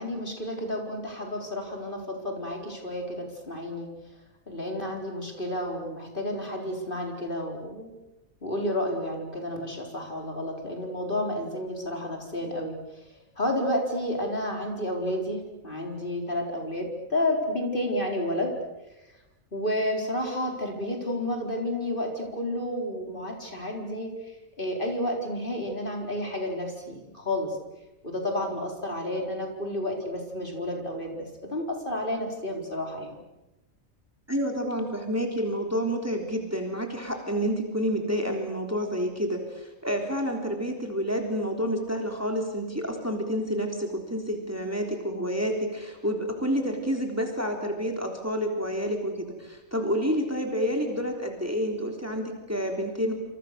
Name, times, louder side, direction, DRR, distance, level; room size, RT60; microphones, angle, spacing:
voice 1, 0.0-3.9 4.5-7.9 8.4-12.7 13.4-15.4 15.6-18.5 19.5-24.1 24.6-27.5 28.0-33.1, left 1 dB, 40° left, 1 dB, 4.6 m, -31 dB
voice 2, 34.3-53.1, equal, 10° right, 2 dB, 3.6 m, -29 dB
28.5 x 27.0 x 6.8 m, 1.0 s
omnidirectional pair, 1.4 m